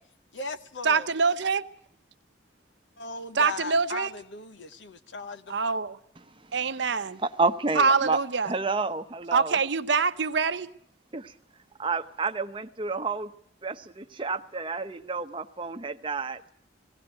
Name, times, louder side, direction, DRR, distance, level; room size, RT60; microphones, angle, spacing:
voice 1, 0.3-1.1 3.0-5.6, left 3 dB, 80° left, 1.1 m, -37 dB
voice 2, 0.8-1.6 3.4-4.1 5.5-5.9 6.5-7.2 7.8-8.5 9.3-10.7, right 5 dB, 70° right, 0.8 m, -24 dB
voice 3, 7.2-8.2 8.4-9.6 11.1-11.3 11.8-13.3 13.6-16.4, right 3 dB, 25° right, 0.8 m, -30 dB
18.0 x 17.0 x 8.9 m
head